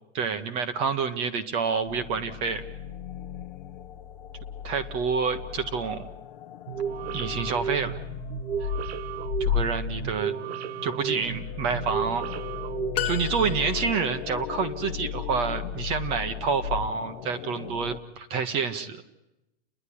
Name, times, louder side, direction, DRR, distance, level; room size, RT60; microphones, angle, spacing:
voice 1, 0.1-2.6 4.6-6.1 7.1-8.0 8.6-8.7 9.4-10.3 10.8-12.2 13.0-19.0, right 5 dB, 20° right, 10 dB, 0.7 m, -28 dB
sound 1, 1.9-18.0, left 8 dB, 45° left, 0.8 m, -35 dB
sound 2, 6.7-13.5, right 8 dB, 70° right, 0.8 m, -34 dB
sound 3, 12.9-14.1, left 13 dB, 70° left, 1.1 m, -32 dB
29.5 x 11.0 x 9.9 m, 0.93 s
supercardioid pair, 175°, 31 cm